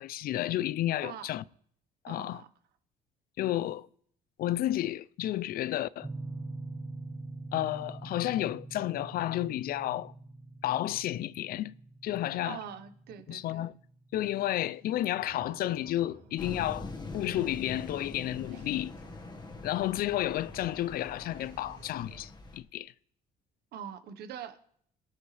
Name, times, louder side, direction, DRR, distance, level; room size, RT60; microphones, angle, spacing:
voice 1, 0.0-1.4 2.0-2.4 3.4-3.9 4.4-6.1 7.5-10.1 10.6-11.7 12.0-12.6 13.3-13.7 14.1-18.9 19.6-22.9, left 13 dB, 60° left, 0.5 m, -31 dB
voice 2, 2.1-2.5 12.4-13.7 23.7-24.6, right 8 dB, 70° right, 1.3 m, -43 dB
sound 1, 6.0-14.7, right 2 dB, 15° right, 0.9 m, -44 dB
sound 2, 15.2-22.3, right 5 dB, 90° right, 2.9 m, -55 dB
sound 3, 16.4-22.6, left 3 dB, 25° left, 1.7 m, -43 dB
23.0 x 7.8 x 3.4 m
cardioid pair, 110°, 17 cm